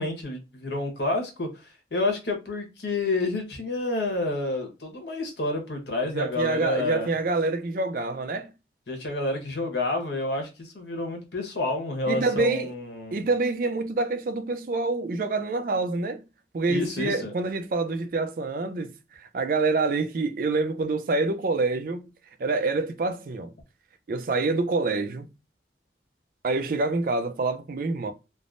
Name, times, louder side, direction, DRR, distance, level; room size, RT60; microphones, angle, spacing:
voice 1, 0.0-1.5 1.9-7.1 8.9-13.2 16.7-17.3, left 2 dB, 70° left, 1.0 m, -29 dB
voice 2, 6.1-8.5 12.1-12.7 13.1-16.2 16.5-22.1 22.4-23.5 24.1-25.3 26.4-28.1, right 3 dB, 50° right, 0.3 m, -26 dB
3.3 x 2.0 x 2.5 m
head